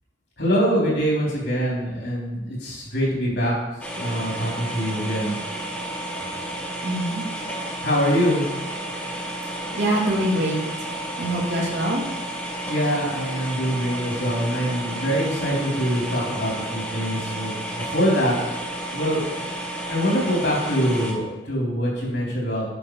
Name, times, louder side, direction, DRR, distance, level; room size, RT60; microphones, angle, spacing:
voice 1, 0.4-3.5 3.9-5.4 7.8-8.4 12.7-18.4 18.9-19.5 19.9-22.7, equal, 60° left, -4 dB, 3.5 m, -24 dB
sound 1, 3.8-21.1, right 1 dB, 10° left, 1.1 m, -32 dB
voice 2, 6.8-7.2 9.7-10.6 11.2-12.0, right 1 dB, 65° right, -3 dB, 2.3 m, -24 dB
9.3 x 6.1 x 4.7 m, 1.1 s
head